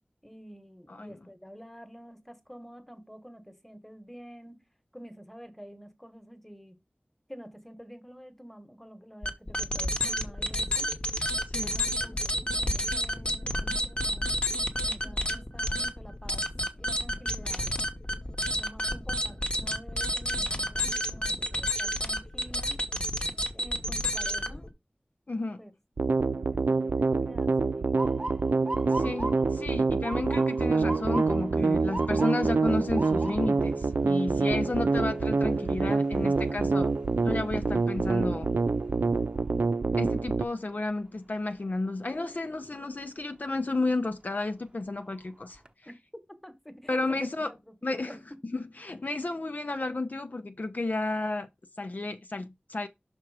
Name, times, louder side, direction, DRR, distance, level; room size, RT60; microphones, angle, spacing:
voice 1, 0.2-4.6 4.9-6.8 7.3-10.9 11.7-14.3 14.8-16.5 16.7-17.9 18.5-22.8 23.5-24.7 25.6-25.7 26.5-28.0 45.8-45.9 46.3-47.3 47.6-48.2, equal, 5° left, 1.2 m, -49 dB
sound 1, 9.2-24.7, equal, 35° left, 1.0 m, -30 dB
voice 2, 25.3-25.6 28.9-36.9 37.2-38.5 40.0-45.9 46.9-47.5 47.8-48.2 48.4-51.5 51.8-52.9, left 2 dB, 55° left, 0.6 m, -32 dB
sound 2, 26.0-40.5, right 4 dB, 80° right, 0.4 m, -26 dB
Motor vehicle (road) / Siren, 28.0-39.9 40.3-40.8 41.5-41.9 43.7-44.0 44.5-44.6 45.0-45.7, right 1 dB, 30° right, 0.8 m, -41 dB
5.9 x 4.4 x 4.8 m
wide cardioid pair, 60°, 3 cm